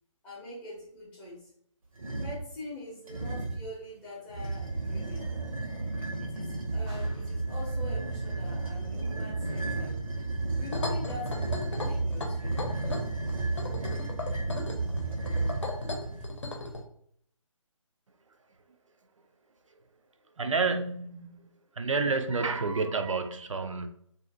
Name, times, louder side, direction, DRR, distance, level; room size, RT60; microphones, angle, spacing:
voice 1, 0.2-1.5 2.1-5.3 6.2-10.0 10.6-12.7, left 2 dB, 5° left, 0.6 m, -44 dB
sound 1, 1.9-2.5 3.1-3.7 4.3-16.3, right 3 dB, 85° right, 0.8 m, -33 dB
sound 2, 10.7-16.8, left 2 dB, 60° left, 0.7 m, -35 dB
voice 2, 20.4-23.9, right 4 dB, 65° right, 0.4 m, -30 dB
2.6 x 2.5 x 2.5 m
figure-of-eight pair, 145°, 17 cm